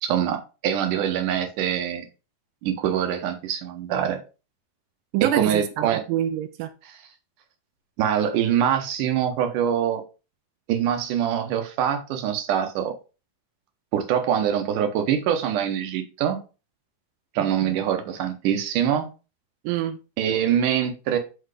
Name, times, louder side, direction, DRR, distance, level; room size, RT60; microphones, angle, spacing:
voice 1, 0.0-2.1 2.6-4.2 5.2-6.0 6.9-7.0 8.0-10.0 10.7-12.9 13.9-16.4 17.4-19.1 20.2-21.2, right 9 dB, 65° right, 2.3 m, -24 dB
voice 2, 5.1-6.7 17.6-17.7 19.7-20.0, right 12 dB, 85° right, 2.0 m, -26 dB
5.7 x 4.5 x 4.9 m
omnidirectional pair, 4.4 m